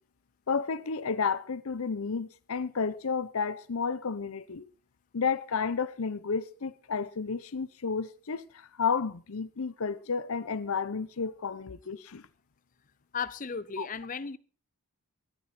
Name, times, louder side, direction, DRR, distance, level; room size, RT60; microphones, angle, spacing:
voice 1, 0.5-4.6 5.1-12.2 13.8-13.9, left 5 dB, 75° left, 0.7 m, -31 dB
voice 2, 13.1-14.4, left 5 dB, 35° left, 0.6 m, -35 dB
14.5 x 12.5 x 4.2 m
head